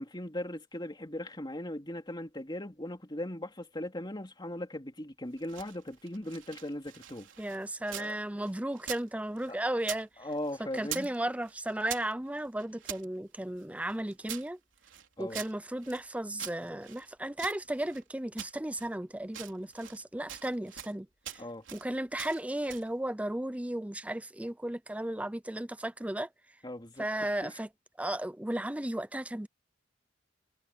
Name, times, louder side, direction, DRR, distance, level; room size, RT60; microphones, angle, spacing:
voice 1, 0.0-7.3 7.9-8.2 9.5-9.6 10.2-11.1 15.2-15.4 21.4-21.6 26.6-27.6, left 1 dB, 20° left, 3.1 m, -39 dB
sound 1, 5.3-8.1 8.4-10.1 10.3-11.2 11.4-13.1 13.6-16.1 16.4-18.0 18.4-19.0 19.3-20.0 20.3-21.0 21.2-21.9 22.2-22.9, right 11 dB, 70° right, 3.7 m, -44 dB
voice 2, 7.4-10.1 10.7-14.6 15.2-21.1 21.3-21.4 21.7-26.3 27.0-27.7 28.0-29.5, right 1 dB, 5° right, 0.5 m, -35 dB
head